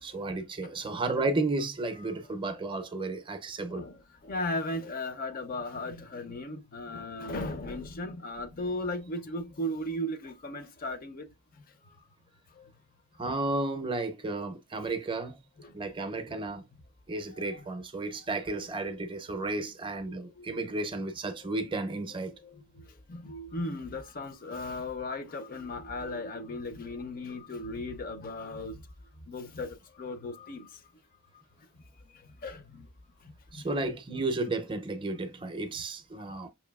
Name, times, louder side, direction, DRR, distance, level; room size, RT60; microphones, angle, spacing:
voice 1, 0.0-3.9 13.2-15.4 15.7-16.7 17.1-22.3 33.5-36.5, right 2 dB, 25° right, 0.5 m, -33 dB
voice 2, 4.2-11.3 15.6-15.7 16.3-16.4 17.3-17.6 20.4-20.6 22.4-22.6 23.1-28.8 29.3-30.7 32.4-32.8 33.6-33.7, left 1 dB, 40° left, 0.5 m, -36 dB
5.3 x 2.6 x 2.2 m
head